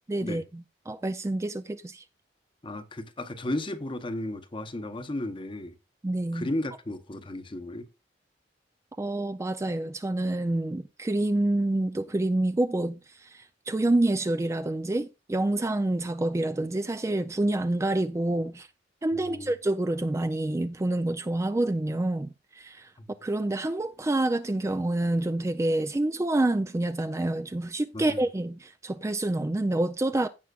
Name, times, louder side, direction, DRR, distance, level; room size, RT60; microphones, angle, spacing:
voice 1, 0.1-2.0 6.0-6.5 9.0-18.7 19.0-22.9 23.2-30.3, right 2 dB, 15° right, 0.3 m, -27 dB
voice 2, 2.6-5.7 6.3-7.9 19.1-19.5 23.0-23.1 27.9-28.2, left 1 dB, 30° left, 0.8 m, -34 dB
16.0 x 5.7 x 2.4 m
head